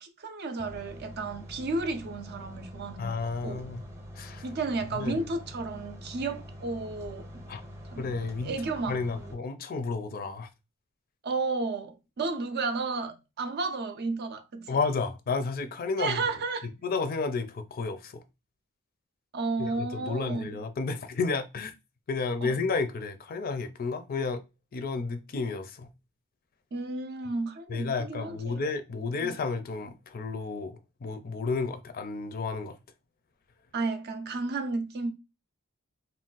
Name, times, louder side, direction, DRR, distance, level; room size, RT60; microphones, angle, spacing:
voice 1, 0.0-3.7 4.4-7.5 7.9-9.3 11.2-14.8 16.0-16.7 19.3-20.6 22.4-22.6 26.7-28.7 29.2-29.4 33.7-35.1, right 3 dB, 50° right, 0.5 m, -33 dB
sound 1, 0.6-9.3, equal, 15° right, 0.7 m, -45 dB
voice 2, 3.0-3.8 4.2-4.5 4.9-5.2 7.5-7.6 8.0-8.5 8.9-10.5 14.7-16.2 16.8-18.2 19.6-21.7 22.1-24.4 24.7-25.9 27.7-32.8, left 4 dB, 45° left, 0.4 m, -32 dB
2.5 x 2.2 x 3.8 m
head